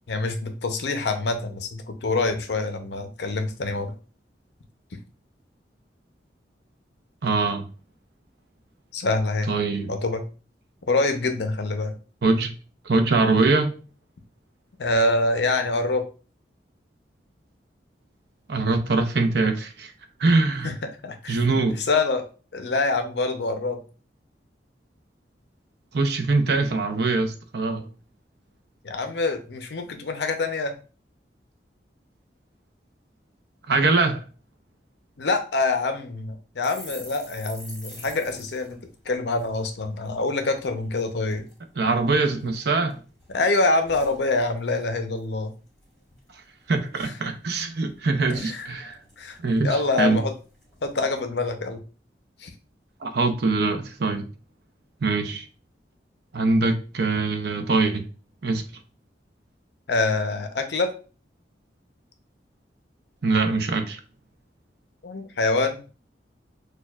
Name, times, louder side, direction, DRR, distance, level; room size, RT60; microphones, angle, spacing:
voice 1, 0.1-3.9 8.9-9.5 9.9-10.2 10.9-11.9 14.8-16.0 20.6-20.7 21.0-21.4 21.8-22.2 22.5-23.8 28.8-30.7 35.2-41.5 43.3-45.5 48.3-48.7 49.2-49.4 49.6-50.3 50.8-51.8 52.4-52.5 59.9-60.9 65.0-65.8, left 3 dB, 70° left, 0.6 m, -25 dB
voice 2, 7.2-7.6 9.5-9.9 12.2-12.5 12.8-13.7 18.5-19.9 20.2-20.7 21.3-21.8 25.9-27.9 33.7-34.2 41.8-43.0 46.7-49.0 49.4-50.2 53.0-54.3 55.0-55.5 56.3-58.0 58.4-58.6 63.2-64.0, right 3 dB, 65° right, 0.6 m, -23 dB
sound 1, 36.6-40.2 40.5-40.7 41.0-41.6 42.1-42.9 43.2-44.9 45.2-45.4 45.7-46.2 46.6-46.7 47.0-47.7 47.9-48.0 48.2-50.1 50.6-50.9, left 1 dB, ahead, 1.9 m, -46 dB
6.3 x 2.3 x 2.3 m
head